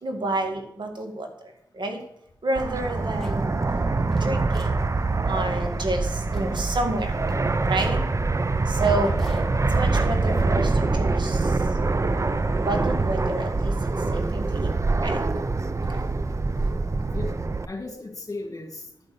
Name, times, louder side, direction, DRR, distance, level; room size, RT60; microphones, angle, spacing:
voice 1, 0.0-1.3 1.7-2.0 2.4-3.5 4.2-4.8 5.3-7.1 7.6-8.0 8.7-9.1 9.7-11.4 12.6-13.7 14.1-14.7 15.0-15.2 15.9-16.0, right 2 dB, 60° right, 4 dB, 2.0 m, -29 dB
sound 1, 2.6-3.4 3.9-4.8 5.3-5.4 5.7-6.0 6.3-6.5 6.9-7.0 7.3-8.0 8.6-10.8, left 1 dB, ahead, 3.2 m, -45 dB
Fixed-wing aircraft airplane, 2.6-17.7, right 3 dB, 35° right, 0.6 m, -24 dB
voice 2, 17.7-18.9, left 2 dB, 40° left, 4 dB, 2.6 m, -37 dB
11.0 x 5.3 x 6.8 m, 0.78 s
cardioid pair, 45°, 9 cm